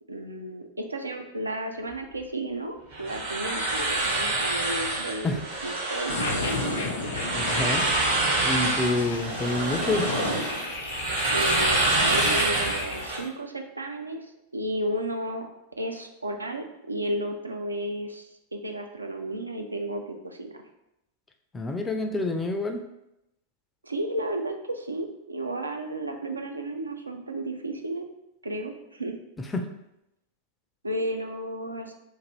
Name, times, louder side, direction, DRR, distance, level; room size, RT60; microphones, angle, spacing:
voice 1, 0.1-6.6 11.3-14.2 14.5-15.5 15.8-18.3 18.5-20.5 23.8-28.1 28.4-29.2 30.8-31.9, right 1 dB, 80° right, 4 dB, 0.3 m, -33 dB
sound 1, 2.9-13.2, right 2 dB, 65° right, 1.0 m, -27 dB
sound 2, 6.1-13.3, left 2 dB, 65° left, 0.5 m, -32 dB
voice 2, 7.0-7.9 8.4-10.1 21.5-22.8 29.4-29.7, left 2 dB, 15° left, 5 dB, 0.3 m, -28 dB
2.6 x 2.5 x 3.0 m, 0.86 s
figure-of-eight pair, 90°, 0 cm